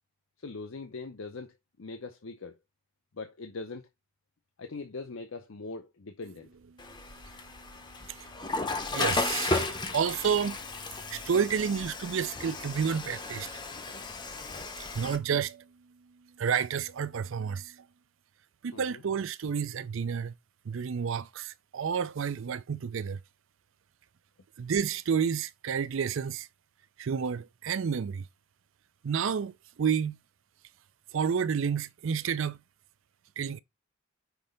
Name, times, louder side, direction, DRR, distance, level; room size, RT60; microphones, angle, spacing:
voice 1, 0.4-2.6 3.1-3.9 4.6-6.5 18.7-19.0, left 3 dB, 60° left, 0.7 m, -41 dB
Water / Toilet flush, 6.8-15.2, left 3 dB, 20° left, 0.7 m, -34 dB
voice 2, 7.1-10.6 11.1-13.6 14.9-15.6 16.4-17.8 18.6-20.3 20.7-23.2 24.6-26.5 27.0-28.2 29.0-30.2 31.1-32.6 33.4-33.6, right 7 dB, 60° right, 0.4 m, -30 dB
5.9 x 3.3 x 5.1 m
head